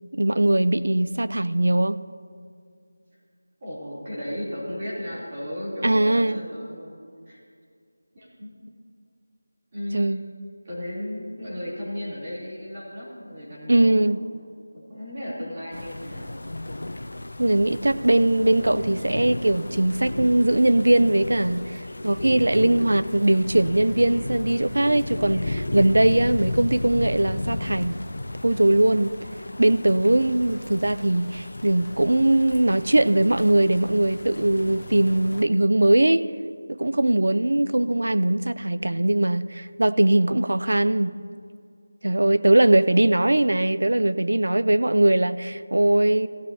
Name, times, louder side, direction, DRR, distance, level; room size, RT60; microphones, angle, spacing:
voice 1, 0.1-2.0 5.8-6.4 9.9-10.2 13.7-14.2 17.4-28.0 28.4-29.2 29.6-36.2 36.7-41.2 42.0-46.3, right 1 dB, 75° right, 0.4 m, -20 dB
voice 2, 3.6-6.9 7.2-7.4 8.1-8.6 9.7-10.2 10.6-14.0 14.7-16.4, left 1 dB, 30° right, 3.2 m, -35 dB
sound 1, 15.7-35.4, left 1 dB, 70° left, 0.6 m, -34 dB
15.5 x 12.0 x 2.8 m
figure-of-eight pair, 170°, 0 cm